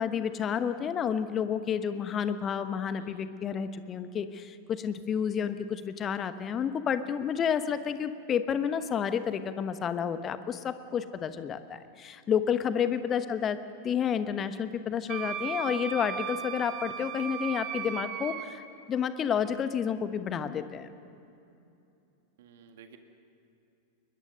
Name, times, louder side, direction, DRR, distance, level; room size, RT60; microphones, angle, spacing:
voice 1, 0.0-13.6 13.8-20.9, left 8 dB, 25° left, 11 dB, 1.1 m, -30 dB
voice 2, 2.9-3.4 12.8-13.2 22.4-23.0, right 7 dB, 55° right, 6 dB, 1.9 m, -54 dB
Wind instrument woodwind instrument, 15.1-18.5, right 9 dB, 35° right, 1.4 m, -36 dB
21.5 x 20.5 x 6.6 m, 2.8 s
figure-of-eight pair, 90°, 0 cm